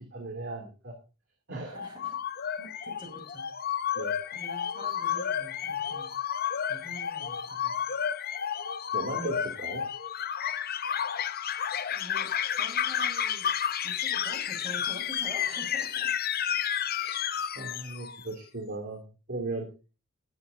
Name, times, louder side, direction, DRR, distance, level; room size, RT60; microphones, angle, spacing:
voice 1, 0.1-0.9 1.5-1.8 4.0-4.1 8.9-9.9 17.0-17.2 17.5-19.0 19.3-19.7, right 2 dB, 50° right, 1 dB, 2.6 m, -36 dB
voice 2, 1.6-2.2 2.6-3.5 4.3-6.1 6.7-7.8 11.9-13.5 13.8-16.1 16.6-16.9, equal, 20° right, 1 dB, 5.9 m, -46 dB
sound 1, 1.7-18.3, left 9 dB, 40° left, 0.5 m, -31 dB
20.0 x 9.3 x 2.7 m, 0.32 s
head